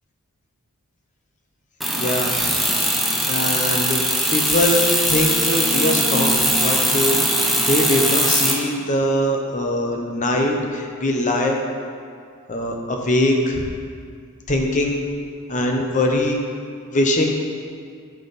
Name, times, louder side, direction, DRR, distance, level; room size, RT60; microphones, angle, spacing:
sound 1, 1.8-8.5, equal, ahead, 0.7 m, -20 dB
voice 1, 2.0-2.3 3.2-4.0 4.3-11.6 12.5-13.7 14.5-15.0 15.5-16.4 16.9-17.3, left 1 dB, 35° left, 2 dB, 0.9 m, -22 dB
10.5 x 5.7 x 4.2 m, 2.2 s
head